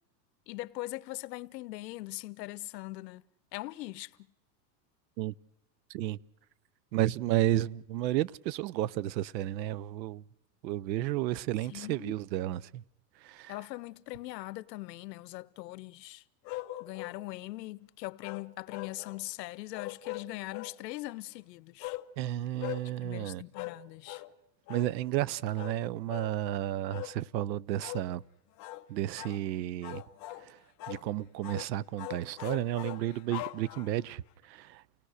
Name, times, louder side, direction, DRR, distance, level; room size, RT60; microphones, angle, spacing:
voice 1, 0.5-3.2 3.5-4.1 11.7-12.2 13.5-16.2 16.8-22.0 23.0-24.2, left 18 dB, 75° left, 1.0 m, -41 dB
voice 2, 6.9-10.2 10.6-12.8 13.2-13.5 22.2-23.4 24.7-28.2 28.9-30.0 30.4-30.6 30.9-34.8, right 13 dB, 85° right, 0.8 m, -32 dB
sound 1, 16.5-17.2 18.2-19.2 19.7-20.8 21.8-22.1 22.6-22.9 23.5-23.8 24.1-24.3 24.7-24.9 25.6-25.8 26.1-26.3 26.9-27.2 27.8-28.1 28.6-28.8 29.2-29.4 29.8-30.5 30.8-31.1 31.4-31.7 32.0-34.1, left 17 dB, 35° left, 0.9 m, -41 dB
29.5 x 18.5 x 6.5 m
supercardioid pair, 155°, 50 cm